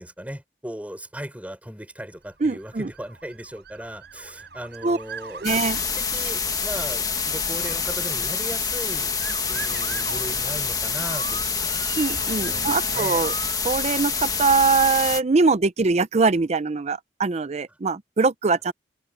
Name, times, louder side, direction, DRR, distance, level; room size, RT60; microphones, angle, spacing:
voice 1, 0.0-9.1 9.5-11.9 12.4-13.2, equal, 10° right, 4.5 m, -37 dB
voice 2, 2.4-2.9 4.8-5.0 5.4-5.8 12.0-13.3 13.6-18.7, right 4 dB, 40° right, 0.5 m, -22 dB
Motor vehicle (road) / Siren, 2.5-13.6, right 4 dB, 65° right, 5.2 m, -40 dB
sound 1, 5.4-15.2, left 5 dB, 20° left, 1.6 m, -26 dB
head